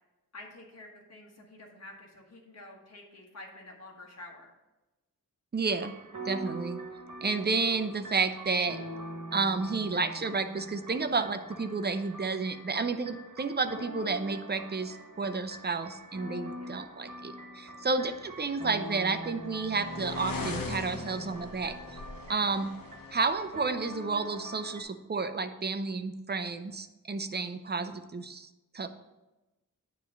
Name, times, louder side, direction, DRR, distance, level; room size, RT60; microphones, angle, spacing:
voice 1, 0.3-4.5 16.6-16.7, left 2 dB, 50° left, -1 dB, 1.4 m, -49 dB
voice 2, 5.5-5.9 6.3-6.8 7.2-8.8 9.3-21.8 22.3-22.7 23.1-28.5 28.7-28.9, right 4 dB, 30° right, 9 dB, 0.5 m, -31 dB
sound 1, 5.7-24.8, right 1 dB, 65° right, 1.2 m, -44 dB
sound 2, 18.6-23.5, left 3 dB, 75° left, 1.1 m, -40 dB
9.3 x 3.1 x 6.5 m, 1.0 s
wide cardioid pair, 100°, 33 cm